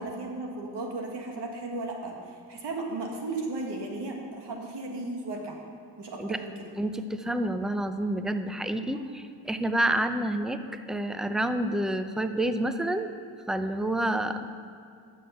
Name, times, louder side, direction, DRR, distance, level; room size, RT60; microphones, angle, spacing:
voice 1, 0.0-2.2 2.5-5.6 6.0-6.6 8.9-9.2, right 2 dB, 65° right, 0 dB, 1.8 m, -35 dB
voice 2, 6.8-13.1 13.5-14.5, right 1 dB, ahead, 9 dB, 0.6 m, -29 dB
13.0 x 6.5 x 5.7 m, 2.4 s
cardioid pair, 60°, 44 cm